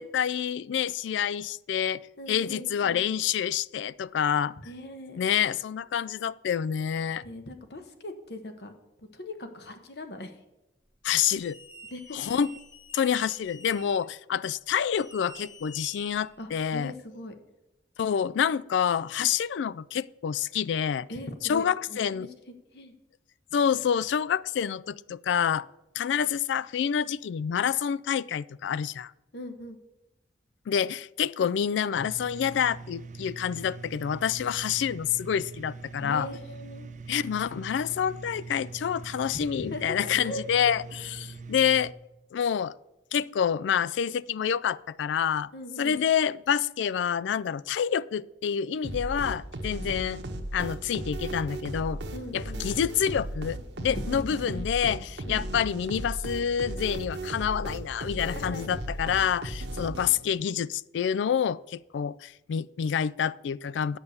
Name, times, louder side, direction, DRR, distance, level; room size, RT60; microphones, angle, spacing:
voice 1, 0.0-4.5 5.2-7.2 11.0-11.6 12.1-12.5 12.9-16.9 18.0-21.1 21.5-22.3 23.5-25.7 26.0-29.1 30.7-36.3 37.1-40.8 41.2-41.9 42.3-42.7 43.1-45.5 45.8-50.2 50.5-52.0 52.3-64.0, left 8 dB, 80° left, 20 dB, 0.3 m, -27 dB
voice 2, 2.2-3.0 4.6-5.2 7.2-8.7 9.1-10.3 11.9-12.2 16.4-17.3 21.1-22.3 22.7-22.9 29.3-29.8 36.0-36.9 39.6-41.1 45.5-46.0 52.1-52.7 53.9-54.7 55.2-55.4 58.3-58.7, left 1 dB, 60° left, 7 dB, 1.0 m, -40 dB
sound 1, 11.3-14.0 14.8-16.6, equal, 20° left, 1.6 m, -49 dB
sound 2, 32.0-41.9, right 4 dB, 40° right, 0.6 m, -43 dB
sound 3, 48.8-60.4, right 1 dB, 70° right, 1.1 m, -36 dB
9.0 x 6.5 x 6.9 m, 0.95 s
head